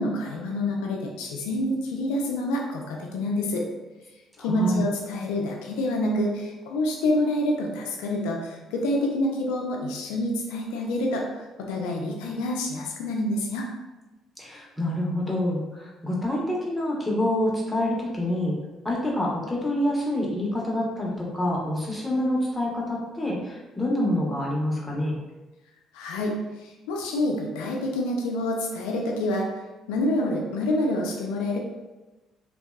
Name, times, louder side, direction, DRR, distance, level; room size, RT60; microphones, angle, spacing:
voice 1, 0.0-3.6 4.4-11.2 11.7-13.7 25.9-26.3 26.6-29.5 29.9-31.6, left 1 dB, 90° left, 0 dB, 0.4 m, -27 dB
voice 2, 4.4-4.8 14.4-18.5 18.8-25.1, left 1 dB, 15° left, -4 dB, 0.9 m, -27 dB
2.7 x 2.2 x 2.2 m, 1.1 s
supercardioid pair, 65°, 0 cm